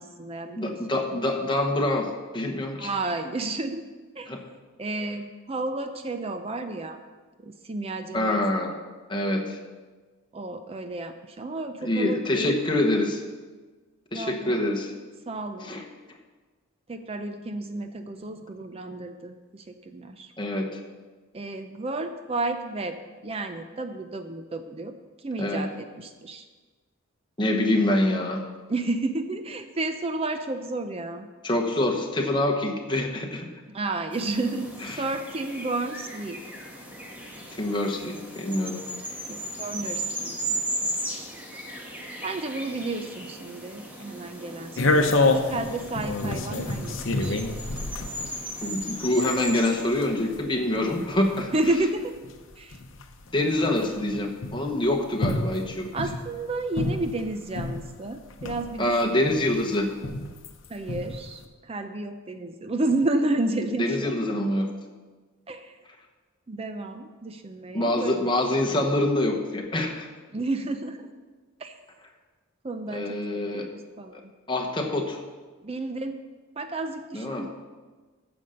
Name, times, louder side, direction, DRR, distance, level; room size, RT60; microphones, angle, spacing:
voice 1, 0.0-0.8 2.8-3.8 4.2-4.4 4.8-7.0 7.4-8.4 10.3-12.6 14.1-14.7 15.3-15.7 16.9-20.3 21.3-23.0 23.2-26.5 28.7-31.3 33.7-36.4 39.3-40.9 41.7-41.9 42.2-47.4 51.5-52.1 52.6-52.8 55.9-59.0 60.7-64.1 65.5-65.8 66.5-68.3 70.3-71.1 71.6-71.8 72.6-73.2 73.5-74.3 75.6-76.2 76.6-77.5, right 2 dB, 25° right, 8 dB, 0.5 m, -31 dB
voice 2, 0.6-2.9 4.3-4.4 8.1-8.7 9.1-9.6 11.8-13.2 14.1-14.9 15.6-15.8 20.4-20.8 25.4-25.7 27.4-28.4 31.4-33.5 34.8-35.0 37.6-38.8 48.6-51.5 53.3-55.9 58.8-59.9 63.7-64.7 67.7-70.1 72.9-73.7 74.5-75.2 77.1-77.4, left 1 dB, 20° left, 2 dB, 1.1 m, -25 dB
sound 1, 34.1-50.3, right 1 dB, 10° right, 1.3 m, -36 dB
sound 2, 44.8-57.9 58.3-60.5 60.9-61.4, left 2 dB, 60° left, 0.8 m, -28 dB
9.5 x 6.9 x 6.5 m, 1.3 s
head